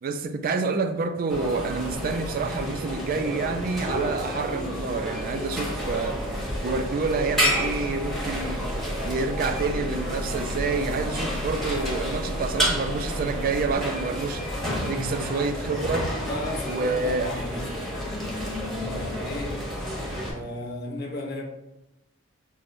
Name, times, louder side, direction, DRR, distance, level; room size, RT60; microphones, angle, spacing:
voice 1, 0.0-6.2 6.6-8.7 9.0-14.4 14.8-16.1 16.7-17.3, right 4 dB, 45° right, 0.3 m, -28 dB
sound 1, 1.3-20.3, equal, ahead, 0.9 m, -30 dB
sound 2, 5.8-13.8, equal, 90° right, 0.6 m, -36 dB
voice 2, 16.2-19.7 20.1-21.4, left 2 dB, 50° left, 0.6 m, -35 dB
5.9 x 2.0 x 2.5 m
head